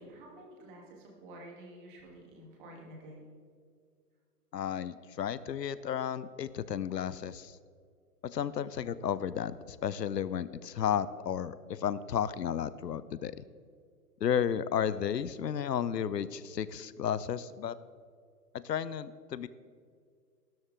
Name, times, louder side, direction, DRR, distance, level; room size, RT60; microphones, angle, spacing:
voice 1, 0.0-3.3, right 1 dB, 30° right, -1 dB, 3.1 m, -50 dB
voice 2, 4.5-7.6 8.2-13.4 14.2-17.8 18.5-19.5, left 9 dB, 90° left, 17 dB, 0.8 m, -33 dB
14.0 x 13.0 x 3.7 m, 2.1 s
hypercardioid pair, 150°, 48 cm